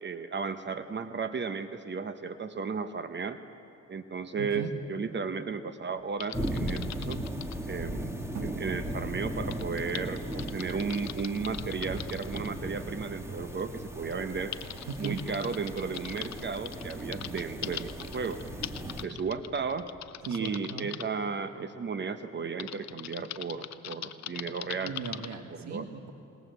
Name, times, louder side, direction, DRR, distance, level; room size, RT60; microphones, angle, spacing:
voice 1, 0.0-3.4 3.9-7.2 7.7-8.1 8.4-14.5 15.0-18.4 19.0-19.9 20.3-24.9 25.6-25.9, right 5 dB, 35° right, 11 dB, 0.9 m, -34 dB
voice 2, 4.4-4.7 8.3-8.6 14.9-15.2 20.2-20.9 24.8-26.1, right 6 dB, 65° right, 6 dB, 1.6 m, -37 dB
Typing, 6.2-7.6 9.5-12.5 13.5-13.6 14.1-21.0 22.6-25.4, left 11 dB, 60° left, 0.8 m, -42 dB
sound 1, 6.3-19.0, right 1 dB, 10° right, 1.9 m, -37 dB
20.5 x 20.0 x 8.0 m, 2.9 s
cardioid pair, 90°, 30 cm